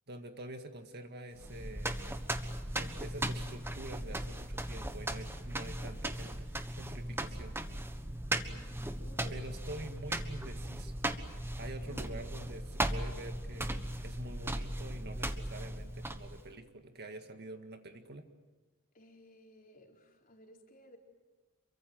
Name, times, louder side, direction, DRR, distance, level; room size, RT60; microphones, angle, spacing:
voice 1, 0.1-2.0 2.8-7.6 9.3-10.9 11.6-18.2, right 1 dB, 50° right, 6 dB, 1.9 m, -47 dB
sound 1, 1.4-16.5, right 1 dB, 10° right, 1.3 m, -38 dB
voice 2, 8.4-9.5 11.8-12.2 18.9-21.0, left 1 dB, 40° left, 1 dB, 4.0 m, -56 dB
28.0 x 24.0 x 7.8 m, 1.2 s
head